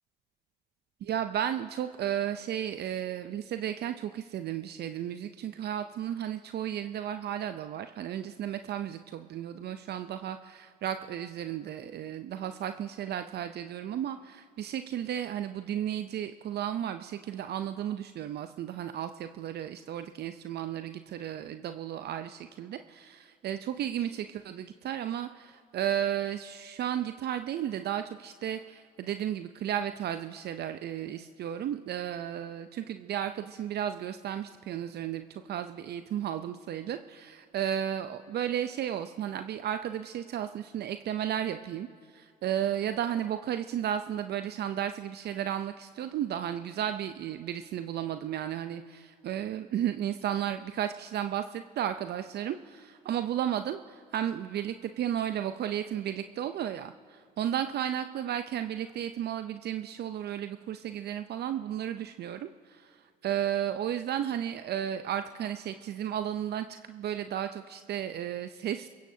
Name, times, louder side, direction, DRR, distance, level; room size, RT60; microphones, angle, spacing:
voice 1, 1.1-41.9 42.1-63.0 63.2-68.9, right 10 dB, 55° right, 9 dB, 0.6 m, -34 dB
29.0 x 16.0 x 2.8 m, 2.3 s
hypercardioid pair, 65°, 20 cm